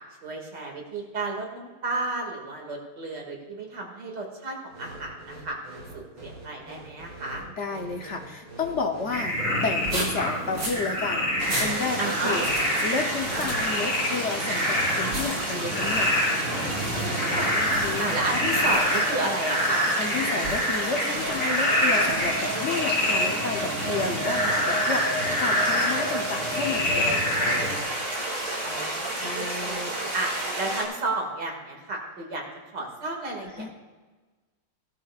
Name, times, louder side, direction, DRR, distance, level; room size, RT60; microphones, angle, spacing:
voice 1, 0.2-7.5 12.0-12.4 16.9-17.5 18.0-19.9 28.6-29.8 30.1-32.4 32.7-33.7, right 2 dB, 50° right, 0 dB, 2.7 m, -32 dB
sound 1, 4.7-9.1 9.7-10.8 11.4-11.8 12.4-12.8 13.2-13.8 15.1-15.5 15.8-16.3 16.7-17.1 17.7-18.1 18.5-19.0 20.4-20.8 21.1-21.4 22.0-22.4, right 1 dB, 70° right, 4.3 m, -36 dB
voice 2, 7.4-12.4 12.8-16.1 17.5-18.6 20.0-27.3 29.1-30.1 33.4-33.7, left 4 dB, 75° left, 3 dB, 0.6 m, -32 dB
Frog, 9.1-27.8, left 1 dB, 35° left, 4.5 m, -27 dB
sound 2, 11.4-30.8, right 1 dB, 25° right, 2.7 m, -31 dB
17.0 x 12.5 x 2.4 m, 1.3 s
omnidirectional pair, 2.3 m